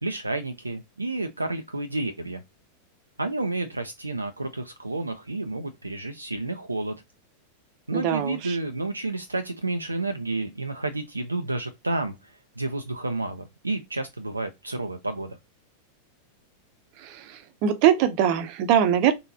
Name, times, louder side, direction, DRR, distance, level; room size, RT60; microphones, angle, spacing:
voice 1, 0.0-2.4 3.2-6.9 7.9-15.4, right 2 dB, 80° right, 0.4 m, -30 dB
voice 2, 7.9-8.6 17.0-19.1, right 9 dB, 45° right, 0.8 m, -22 dB
4.1 x 3.7 x 2.6 m
figure-of-eight pair, 90°, 0 cm